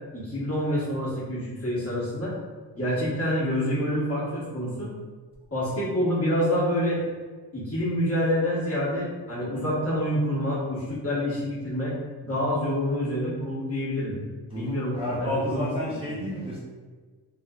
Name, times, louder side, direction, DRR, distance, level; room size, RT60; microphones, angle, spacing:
voice 1, 0.1-2.3 2.7-4.9 5.5-7.0 7.5-12.0 12.2-14.2 14.5-16.1, equal, 35° left, -8 dB, 1.3 m, -27 dB
voice 2, 14.5-16.6, equal, 15° right, -8 dB, 0.4 m, -31 dB
3.2 x 3.0 x 2.3 m, 1.5 s
wide cardioid pair, 130°, 42 cm